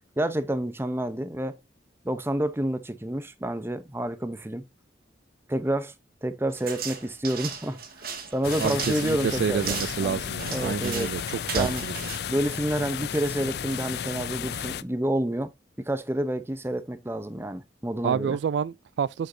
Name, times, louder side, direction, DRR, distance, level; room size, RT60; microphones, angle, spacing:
voice 1, 0.2-1.6 2.0-4.6 5.5-5.9 6.2-7.8 8.3-10.2 10.5-11.1 11.5-11.8 12.3-15.5 15.9-18.4, right 1 dB, 15° right, 0.8 m, -29 dB
sound 1, 6.5-13.1, right 6 dB, 55° right, 1.9 m, -36 dB
sound 2, 8.4-14.8, left 8 dB, 60° left, 0.4 m, -33 dB
voice 2, 8.6-12.0 18.0-19.3, right 7 dB, 80° right, 0.3 m, -28 dB
8.0 x 6.5 x 2.7 m
head